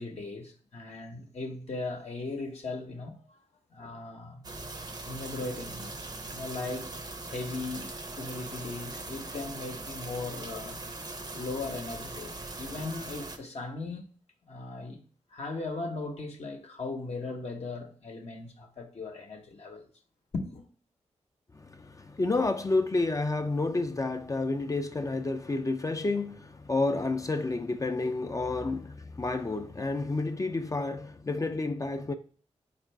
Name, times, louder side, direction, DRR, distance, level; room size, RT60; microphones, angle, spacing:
voice 1, 0.0-3.4 3.7-4.5 5.0-7.0 7.3-10.8 11.2-14.0 14.5-15.0 15.3-19.9 20.3-20.6 28.5-28.7, left 3 dB, 60° left, 0.7 m, -38 dB
sound 1, 4.4-13.4, right 2 dB, 35° right, 0.7 m, -41 dB
voice 2, 21.5-32.1, left 3 dB, 25° left, 0.4 m, -30 dB
4.3 x 2.4 x 4.4 m
cardioid pair, 50°, 12 cm